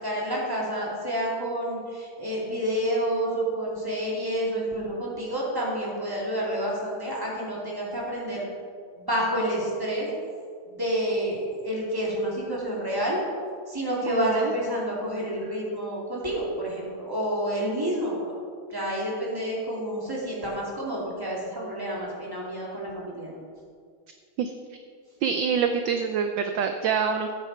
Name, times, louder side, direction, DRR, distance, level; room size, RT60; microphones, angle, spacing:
voice 1, 0.0-8.5 9.0-10.1 10.7-13.2 13.7-18.3 18.7-23.4, equal, 10° right, -5 dB, 2.7 m, -29 dB
voice 2, 14.1-14.5 24.4-24.5 25.2-27.3, right 6 dB, 70° right, 6 dB, 1.2 m, -26 dB
13.5 x 9.6 x 4.3 m, 2.1 s
omnidirectional pair, 2.4 m